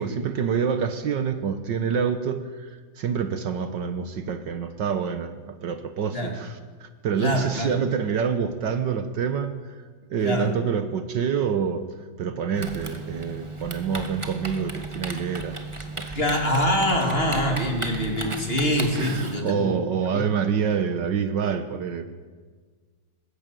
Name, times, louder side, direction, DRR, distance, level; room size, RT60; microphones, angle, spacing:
voice 1, 0.0-9.8 10.1-11.8 12.2-16.2 18.9-22.1, right 7 dB, 65° right, 10 dB, 1.7 m, -27 dB
voice 2, 7.2-7.7 10.2-10.5 16.1-19.8, equal, 25° left, 3 dB, 3.1 m, -24 dB
Typing, 12.6-19.4, right 3 dB, 15° right, 1.6 m, -35 dB
20.5 x 15.5 x 9.2 m, 1.5 s
omnidirectional pair, 2.2 m